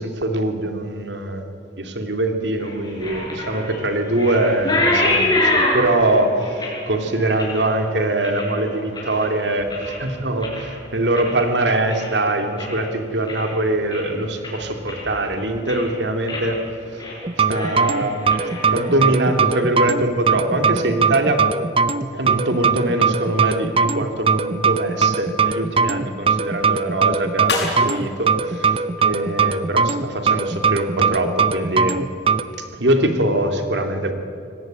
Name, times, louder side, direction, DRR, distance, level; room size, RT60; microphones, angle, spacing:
voice 1, 0.0-1.5 1.8-16.6 16.9-17.0 17.5-18.3 18.7-21.5 22.1-32.0 32.6-34.1, right 1 dB, 85° right, 5 dB, 2.5 m, -23 dB
sound 1, 2.6-9.3 9.6-10.1 10.4-12.8 13.1-13.6 13.9-14.0 14.4-15.2 15.5-15.9 16.3-16.5 16.8-17.2 17.4-19.3, left 2 dB, 25° left, 7.0 m, -26 dB
sound 2, 17.2-32.4, right 5 dB, 30° right, 0.7 m, -20 dB
sound 3, 27.4-29.8, left 3 dB, 80° left, 6.2 m, -34 dB
24.5 x 18.0 x 9.2 m, 2.5 s
head